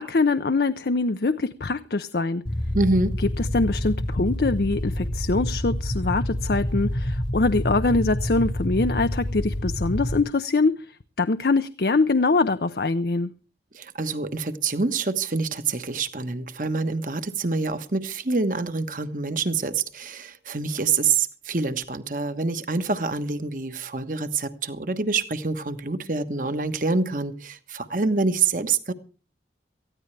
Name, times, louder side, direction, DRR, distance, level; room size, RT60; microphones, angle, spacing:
voice 1, 0.0-2.4 3.5-10.8 11.2-13.3, left 3 dB, 65° left, 10 dB, 0.6 m, -23 dB
sound 1, 2.5-10.2, left 1 dB, 30° left, 1.1 m, -28 dB
voice 2, 2.7-3.1 13.7-28.9, right 4 dB, 50° right, 9 dB, 1.3 m, -26 dB
19.0 x 14.5 x 3.3 m, 0.37 s
head